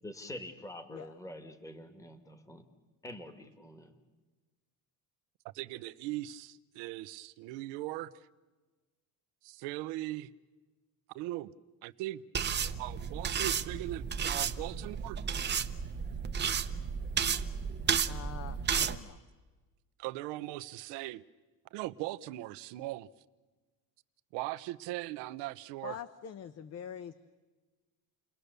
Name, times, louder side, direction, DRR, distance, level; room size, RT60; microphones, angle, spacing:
voice 1, 0.0-2.6 3.0-3.9, left 1 dB, 10° left, 1.6 m, -46 dB
voice 2, 5.5-8.1 9.4-10.3 11.1-11.5 11.8-12.2 12.6-15.2 20.0-21.2 21.7-23.1 24.3-26.0, right 17 dB, 80° right, 0.9 m, -39 dB
sound 1, 12.3-18.9, right 7 dB, 25° right, 0.9 m, -33 dB
voice 3, 18.1-19.2 25.8-27.1, left 8 dB, 40° left, 0.9 m, -44 dB
30.0 x 21.0 x 6.8 m
cardioid pair, 125°, 41 cm